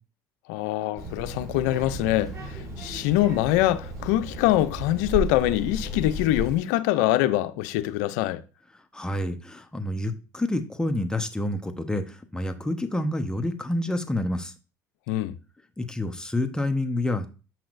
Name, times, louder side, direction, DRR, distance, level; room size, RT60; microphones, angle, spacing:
voice 1, 0.5-8.4 15.1-15.3, left 14 dB, 80° left, 0.5 m, -24 dB
Child speech kid speaking, 1.0-6.6, right 1 dB, 35° right, 3.6 m, -34 dB
voice 2, 8.9-14.5 15.8-17.3, left 1 dB, 10° left, 1.0 m, -28 dB
6.9 x 5.9 x 2.6 m
supercardioid pair, 75°, 9 cm